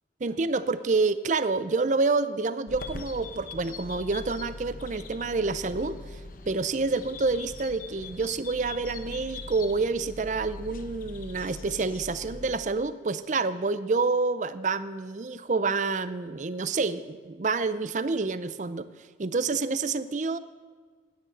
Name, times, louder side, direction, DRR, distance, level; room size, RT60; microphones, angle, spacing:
voice 1, 0.2-6.0 6.5-18.9 19.2-20.4, right 3 dB, 40° right, 14 dB, 0.5 m, -28 dB
sound 1, 2.7-12.6, left 3 dB, 50° left, 0.9 m, -42 dB
10.5 x 10.0 x 7.8 m, 1.5 s
head